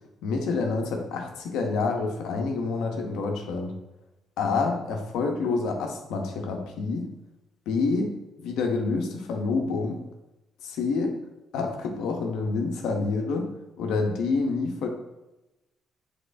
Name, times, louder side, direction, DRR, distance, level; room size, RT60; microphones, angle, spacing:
voice 1, 0.2-3.7 4.4-7.1 7.7-10.0 10.6-11.1 11.5-13.5 13.8-14.9, left 4 dB, 90° left, 3 dB, 0.6 m, -27 dB
6.1 x 3.0 x 2.5 m, 0.98 s
cardioid pair, 90°, 0 cm